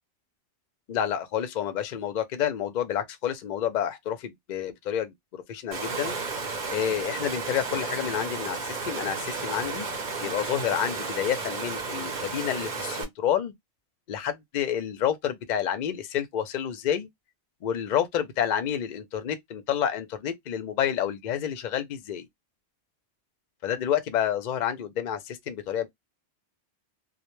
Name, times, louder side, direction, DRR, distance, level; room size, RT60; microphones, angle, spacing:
voice 1, 0.9-6.2 6.7-9.9 10.2-13.5 14.1-17.1 17.6-22.3 23.6-25.9, left 9 dB, 55° left, 0.5 m, -29 dB
Water, 5.7-13.0, right 4 dB, 50° right, 0.8 m, -33 dB
2.1 x 2.1 x 3.0 m
omnidirectional pair, 1.1 m